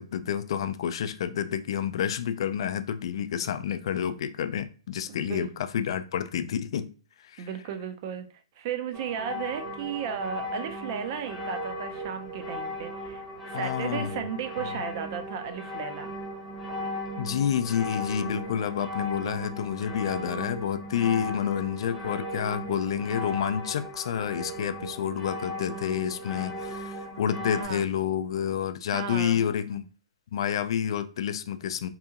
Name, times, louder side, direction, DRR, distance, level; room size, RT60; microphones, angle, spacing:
voice 1, 0.0-6.9 7.2-7.5 13.5-14.2 17.2-29.8 30.3-31.9, left 8 dB, 55° left, 0.3 m, -29 dB
voice 2, 5.1-5.5 7.4-8.3 8.6-16.2 27.5-27.8 28.9-29.5, right 7 dB, 40° right, 0.4 m, -35 dB
sound 1, 8.9-27.6, left 1 dB, ahead, 0.7 m, -37 dB
2.8 x 2.7 x 2.4 m
hypercardioid pair, 145°, 3 cm